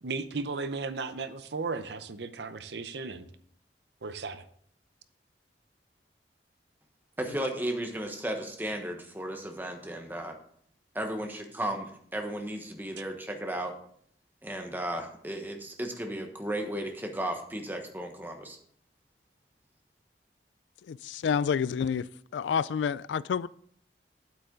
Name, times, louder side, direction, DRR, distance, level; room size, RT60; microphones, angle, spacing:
voice 1, 0.0-3.3 4.0-4.4, right 4 dB, 70° right, 0.7 m, -35 dB
voice 2, 7.2-10.3 10.9-13.7 14.4-18.6, right 1 dB, 10° right, 1.1 m, -34 dB
voice 3, 20.8-23.5, left 7 dB, 90° left, 0.3 m, -29 dB
9.3 x 8.4 x 3.8 m
head